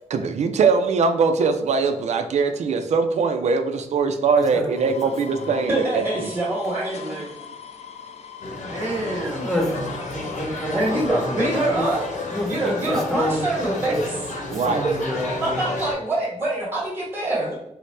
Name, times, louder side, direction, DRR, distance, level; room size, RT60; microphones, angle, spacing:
voice 1, 0.1-6.3 14.5-14.9, right 5 dB, 65° right, 7 dB, 0.4 m, -21 dB
voice 2, 4.4-4.9 5.2-5.5 8.9-11.8 12.3-14.0 14.5-15.7, left 1 dB, ahead, -3 dB, 0.8 m, -29 dB
sound 1, 4.8-12.7, left 7 dB, 55° left, 0.4 m, -42 dB
voice 3, 5.7-7.3 8.7-9.5 10.7-12.1 12.5-14.0 15.4-17.6, right 2 dB, 20° right, -6 dB, 1.4 m, -25 dB
sound 2, 8.4-15.9, left 2 dB, 75° left, 0.8 m, -32 dB
4.2 x 2.0 x 3.2 m, 0.82 s
wide cardioid pair, 145°, 13 cm